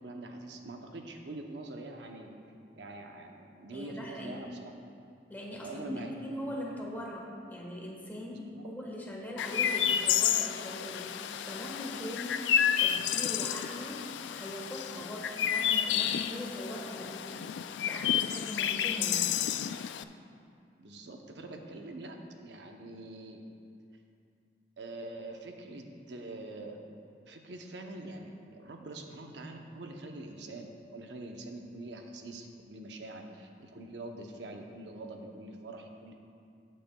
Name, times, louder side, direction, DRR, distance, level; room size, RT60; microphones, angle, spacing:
voice 1, 0.0-2.3 2.8-4.7 5.6-6.5 20.8-23.4 24.8-26.8 27.3-36.1, right 2 dB, 75° right, 3 dB, 0.7 m, -44 dB
voice 2, 3.7-4.6 5.3-19.3, left 1 dB, 10° left, -3 dB, 1.3 m, -41 dB
Chirp tweet, 9.4-20.0, left 9 dB, 90° left, 0.3 m, -30 dB
13.5 x 8.5 x 2.3 m, 2.4 s
head